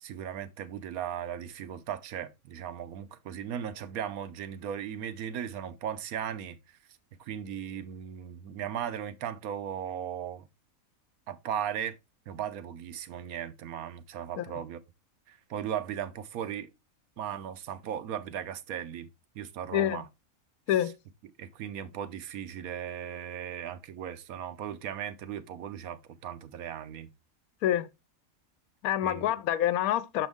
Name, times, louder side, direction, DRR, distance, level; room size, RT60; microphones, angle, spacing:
voice 1, 0.0-6.6 7.2-10.5 11.3-12.0 12.3-14.8 15.3-16.7 17.2-19.1 19.3-20.1 21.4-27.1 29.0-29.3, right 9 dB, 80° right, 1.1 m, -37 dB
voice 2, 19.7-20.0 20.7-20.9 27.6-27.9 28.8-30.3, left 12 dB, 80° left, 1.1 m, -27 dB
6.2 x 5.3 x 3.5 m
omnidirectional pair, 1.5 m